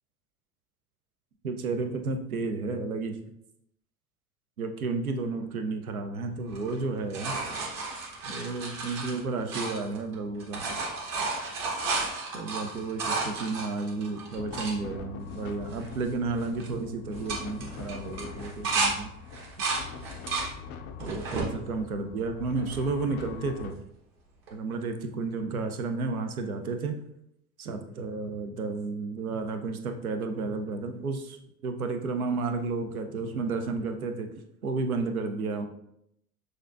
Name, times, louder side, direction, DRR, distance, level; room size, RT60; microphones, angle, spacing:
voice 1, 1.4-3.2 4.6-7.3 8.2-10.6 12.3-19.1 21.0-23.8 24.5-26.9 27.6-31.4 31.6-34.3 34.6-35.7, right 3 dB, 85° right, 6 dB, 0.6 m, -32 dB
sound 1, 6.5-10.1 10.4-14.8 15.3-15.4 15.6-16.1 16.4-16.7 17.1-18.9 19.3-20.5 21.0-21.5 22.1-22.9 24.5-24.6, right 3 dB, 50° right, 1.4 m, -32 dB
sound 2, 14.4-23.7, left 6 dB, 25° left, 0.4 m, -43 dB
6.2 x 2.6 x 2.5 m, 0.77 s
figure-of-eight pair, 80°, 42 cm